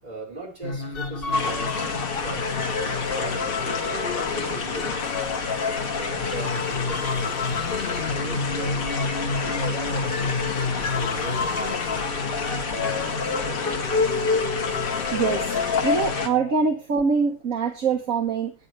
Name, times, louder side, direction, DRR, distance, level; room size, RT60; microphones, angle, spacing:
voice 1, 0.0-5.1 5.7-8.9 9.4-13.9, right 2 dB, 20° right, -3 dB, 6.2 m, -39 dB
sound 1, 0.6-16.7, left 4 dB, 40° left, 0.8 m, -29 dB
sound 2, 1.3-16.3, left 5 dB, 75° left, 2.8 m, -30 dB
voice 2, 15.1-15.5 15.8-18.5, right 5 dB, 45° right, 3 dB, 1.4 m, -24 dB
18.0 x 9.3 x 3.4 m, 0.32 s
omnidirectional pair, 2.4 m